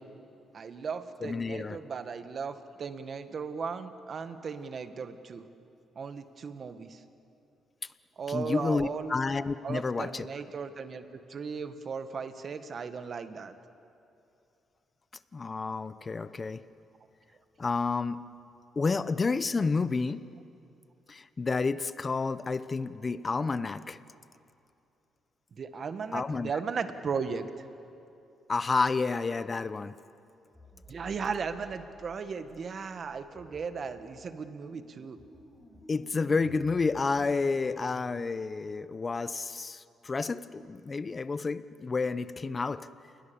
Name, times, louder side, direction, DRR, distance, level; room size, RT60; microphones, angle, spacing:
voice 1, 0.5-5.5 5.9-7.0 8.2-9.2 9.6-13.5 25.5-27.5 30.9-35.2, right 5 dB, 50° right, 9 dB, 1.6 m, -36 dB
voice 2, 1.2-1.8 8.3-10.3 15.3-16.6 17.6-18.2 18.8-20.2 21.1-24.0 26.1-26.5 28.5-29.9 35.9-42.9, left 4 dB, 30° left, 15 dB, 0.8 m, -30 dB
sound 1, 30.5-38.2, equal, 5° left, 7.8 m, -54 dB
28.5 x 21.0 x 7.1 m, 2.7 s
cardioid pair, 90°, 0 cm